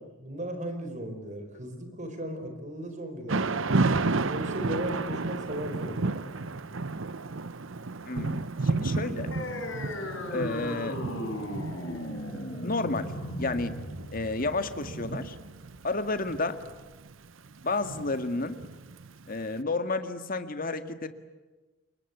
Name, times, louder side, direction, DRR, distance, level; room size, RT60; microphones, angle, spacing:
voice 1, 0.0-3.7 4.3-6.4, right 1 dB, 40° right, 7 dB, 4.6 m, -37 dB
Thunder / Rain, 3.3-19.3, right 3 dB, 75° right, 0.9 m, -32 dB
voice 2, 8.1-9.3 10.3-11.0 12.6-13.1 13.4-13.7 14.1-15.4 15.8-16.6 17.6-18.6 19.3-21.1, left 3 dB, 45° left, 9 dB, 1.9 m, -31 dB
sound 1, 9.3-16.3, left 1 dB, 70° left, 5.6 m, -37 dB
28.0 x 22.5 x 8.2 m, 1.2 s
head